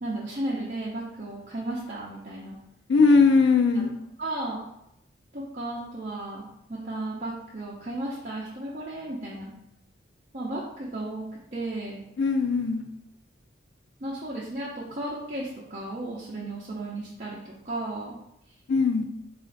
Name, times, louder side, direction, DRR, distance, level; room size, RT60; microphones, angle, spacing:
voice 1, 0.0-2.6 3.7-3.9 4.2-4.7 5.3-9.5 10.3-11.2 11.5-12.0 14.0-18.2, right 1 dB, 40° right, -6 dB, 0.6 m, -34 dB
voice 2, 2.9-3.9 12.2-12.8 18.7-19.1, left 4 dB, 65° left, 6 dB, 0.4 m, -20 dB
4.1 x 2.5 x 3.8 m, 0.80 s
head